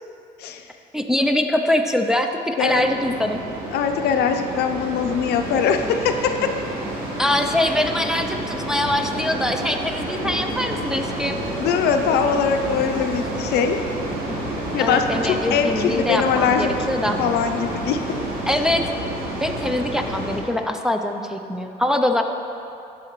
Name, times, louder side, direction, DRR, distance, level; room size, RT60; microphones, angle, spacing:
voice 1, 0.9-3.4 7.2-11.4 14.8-17.2 18.5-19.0 19.4-22.2, left 1 dB, 5° right, 3 dB, 0.4 m, -23 dB
sound 1, 2.7-20.4, right 1 dB, 60° right, 1.6 m, -29 dB
voice 2, 3.7-6.5 11.6-13.8 14.7-16.7 17.2-18.0, left 7 dB, 75° left, 6 dB, 0.5 m, -22 dB
12.5 x 4.9 x 3.1 m, 2.7 s
cardioid pair, 110°, 17 cm